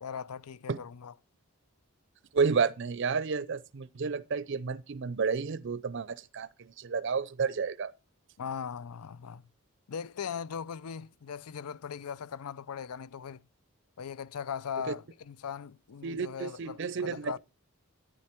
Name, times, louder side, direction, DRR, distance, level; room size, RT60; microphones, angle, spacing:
voice 1, 0.0-1.1 8.4-9.4 9.9-13.5 14.0-17.4, left 7 dB, 85° left, 0.5 m, -39 dB
voice 2, 2.3-7.9 14.9-15.0 16.0-17.4, right 5 dB, 55° right, 0.5 m, -31 dB
10.5 x 10.0 x 4.4 m
head